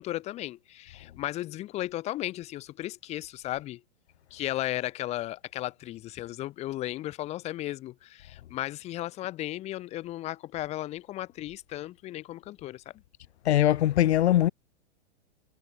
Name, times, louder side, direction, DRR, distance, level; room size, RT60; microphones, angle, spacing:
voice 1, 0.0-3.8 4.3-12.8, left 15 dB, 20° left, 3.5 m, -35 dB
voice 2, 13.5-14.5, left 13 dB, 65° left, 0.6 m, -21 dB
hypercardioid pair, 170°, 35 cm